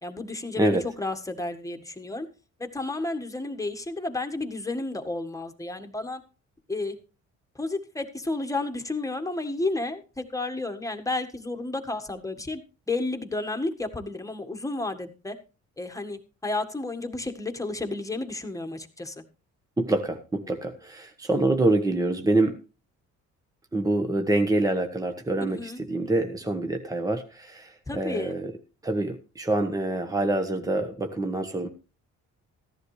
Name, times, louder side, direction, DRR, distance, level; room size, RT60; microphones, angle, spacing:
voice 1, 0.0-2.3 2.6-6.2 6.7-7.0 7.5-12.6 12.9-15.4 15.8-19.2 25.5-25.8 27.9-28.4, left 2 dB, 10° left, 6 dB, 1.7 m, -32 dB
voice 2, 19.8-22.6 23.7-28.5 28.8-31.7, right 2 dB, 10° right, 6 dB, 1.3 m, -26 dB
14.5 x 11.0 x 3.3 m, 0.33 s
cardioid pair, 90°, 30 cm